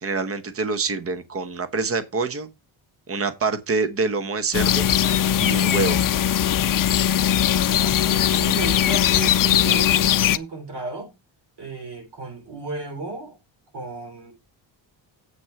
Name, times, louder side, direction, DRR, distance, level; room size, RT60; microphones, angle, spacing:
voice 1, 0.0-2.5 3.1-4.9 5.4-6.0, right 4 dB, 30° right, 1.0 m, -26 dB
sound 1, 4.5-10.4, left 10 dB, 45° left, 0.5 m, -20 dB
voice 2, 7.8-11.1 11.6-13.4 13.7-14.3, right 3 dB, 55° right, 3.7 m, -34 dB
8.0 x 6.1 x 5.7 m
wide cardioid pair, 160°, 49 cm